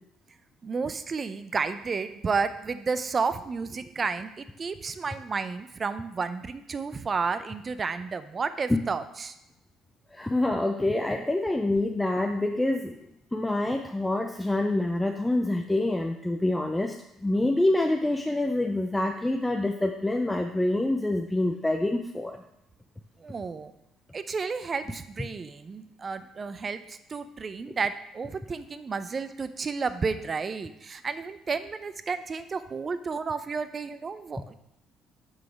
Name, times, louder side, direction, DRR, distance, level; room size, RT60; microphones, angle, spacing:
voice 1, 0.6-9.4 23.2-23.7 24.1-34.5, right 5 dB, 40° right, 11 dB, 0.5 m, -32 dB
voice 2, 10.1-13.0 13.3-16.9 17.2-22.4, left 1 dB, 10° left, 3 dB, 0.6 m, -26 dB
5.9 x 4.8 x 4.8 m, 0.81 s
hypercardioid pair, 60°, 0 cm